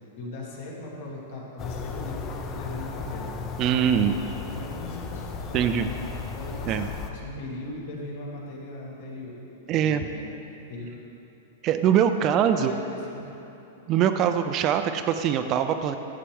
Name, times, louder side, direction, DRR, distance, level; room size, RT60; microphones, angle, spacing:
voice 1, 0.2-3.4 3.9-6.0 6.3-10.3 10.7-11.0 12.2-12.7 13.1-13.3, left 2 dB, 65° left, -3 dB, 2.2 m, -39 dB
sound 1, 1.6-7.1, left 5 dB, 25° left, 0.6 m, -35 dB
voice 2, 3.6-4.2 5.5-5.9 6.7-6.9 9.7-10.0 11.6-12.7 13.9-16.0, right 9 dB, 30° right, 8 dB, 0.4 m, -23 dB
11.0 x 7.4 x 3.5 m, 3.0 s
supercardioid pair, 145°, 0 cm